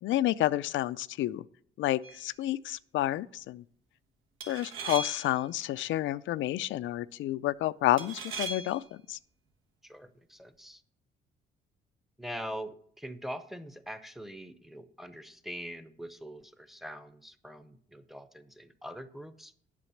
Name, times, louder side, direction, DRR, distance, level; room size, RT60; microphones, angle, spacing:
voice 1, 0.0-1.4 1.8-3.6 4.5-9.2, left 14 dB, 75° left, 0.4 m, -30 dB
sound 1, 2.0-2.3 4.4-5.5 8.0-8.9, right 4 dB, 80° right, 1.4 m, -39 dB
voice 2, 9.8-10.8 12.2-19.5, equal, ahead, 0.7 m, -43 dB
8.3 x 5.8 x 7.1 m
cardioid pair, 90°, 20 cm